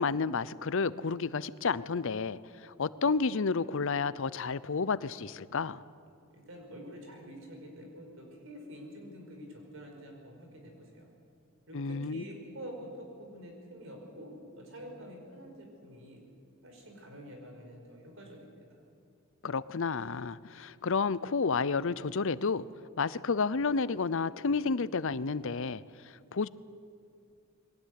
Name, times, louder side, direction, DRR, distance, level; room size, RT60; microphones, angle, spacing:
voice 1, 0.0-5.8 11.7-12.2 19.4-22.7 23.0-26.5, left 4 dB, 65° left, 18 dB, 0.6 m, -31 dB
voice 2, 6.3-11.1 11.7-16.2 16.6-18.8, equal, 65° right, 2 dB, 5.2 m, -47 dB
21.5 x 18.5 x 9.5 m, 2.5 s
head